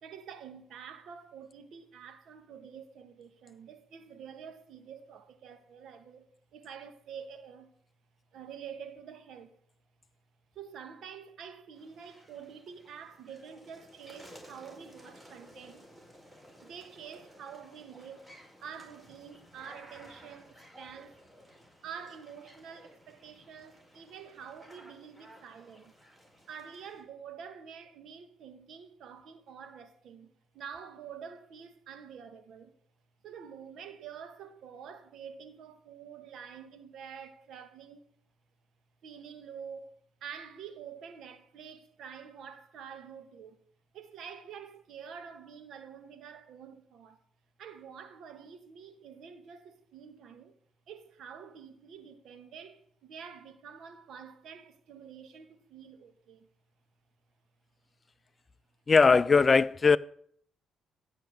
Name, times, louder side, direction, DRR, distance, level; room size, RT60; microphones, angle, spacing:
voice 1, 0.0-6.3 6.5-7.7 8.3-9.5 10.5-15.9 16.6-18.3 18.6-21.2 21.8-25.9 26.5-32.7 33.2-38.0 39.0-39.9 40.2-43.6 43.9-47.2 47.6-50.6 50.9-56.5, right 7 dB, 75° right, 1.7 m, -47 dB
sound 1, 11.7-27.0, equal, 15° right, 4.8 m, -56 dB
voice 2, 58.9-60.0, left 4 dB, 35° left, 0.4 m, -20 dB
15.5 x 5.9 x 7.9 m
cardioid pair, 90°, 0 cm